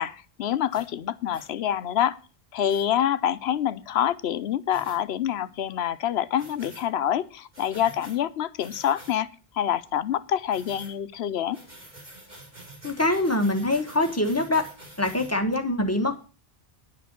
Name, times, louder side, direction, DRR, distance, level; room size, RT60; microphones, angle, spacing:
voice 1, 0.0-2.2 2.5-9.3 9.5-11.6, left 10 dB, 80° left, 14 dB, 0.9 m, -26 dB
sound 1, 0.7-0.9 1.3-1.5 2.7-2.9 4.7-5.0 6.4-6.9 7.5-8.2 8.6-9.2 10.5-10.9 11.5-15.3, right 1 dB, 45° right, 3.4 m, -47 dB
voice 2, 12.8-14.6 15.0-16.2, left 2 dB, 15° left, 4 dB, 1.3 m, -24 dB
10.5 x 6.0 x 7.2 m, 0.35 s
omnidirectional pair, 1.0 m